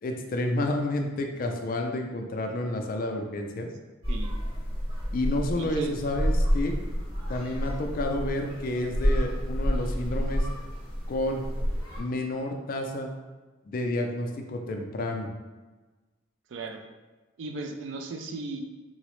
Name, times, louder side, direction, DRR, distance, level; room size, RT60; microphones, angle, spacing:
voice 1, 0.0-3.7 5.1-6.7 7.3-10.5 11.1-11.4 12.0-13.1 13.7-15.3, left 1 dB, 45° left, 3 dB, 0.3 m, -30 dB
sound 1, 4.0-12.0, equal, 25° right, 0.9 m, -29 dB
voice 2, 5.6-5.9 16.5-16.8 17.4-18.6, right 3 dB, 60° right, 5 dB, 0.3 m, -36 dB
3.8 x 2.0 x 3.0 m, 1.2 s
head